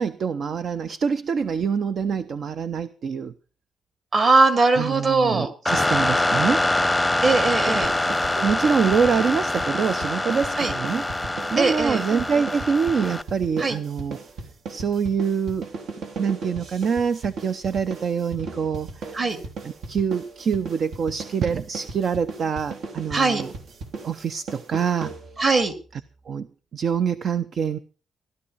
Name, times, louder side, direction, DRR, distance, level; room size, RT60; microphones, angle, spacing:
voice 1, 0.0-3.3 4.8-7.2 7.7-7.8 8.4-11.1 11.5-14.2 14.7-15.7 16.2-23.5 24.0-25.1 25.9-26.0 26.3-26.5 26.7-27.8, right 6 dB, 50° right, 13 dB, 0.7 m, -25 dB
voice 2, 4.1-5.5 7.2-7.9 10.6-10.7 11.6-12.0 13.6-13.8 19.1-19.4 23.1-23.4 25.4-25.7, right 3 dB, 35° right, 10 dB, 2.5 m, -20 dB
sound 1, 5.7-13.2, left 2 dB, 5° left, 0.8 m, -24 dB
sound 2, 7.8-25.6, right 3 dB, 70° right, 3.2 m, -37 dB
16.0 x 12.0 x 5.5 m, 0.37 s
cardioid pair, 145°, 0 cm